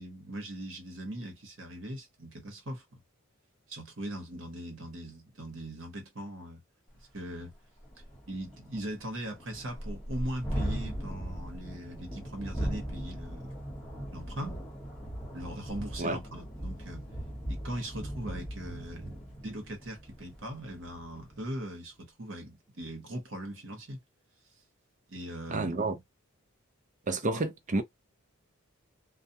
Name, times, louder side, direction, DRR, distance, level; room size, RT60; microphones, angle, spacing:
voice 1, 0.0-3.0 3.7-6.6 7.1-7.5 8.3-13.5 14.1-14.6 15.3-17.1 17.5-24.0 25.1-25.8 27.3-27.4, right 1 dB, 65° right, 1.0 m, -40 dB
Thunderstorm, 7.0-7.1 7.4-7.5 7.8-21.4, equal, 5° left, 1.2 m, -39 dB
voice 2, 25.5-26.0 27.1-27.8, right 2 dB, 40° right, 0.5 m, -30 dB
2.4 x 2.1 x 2.7 m
head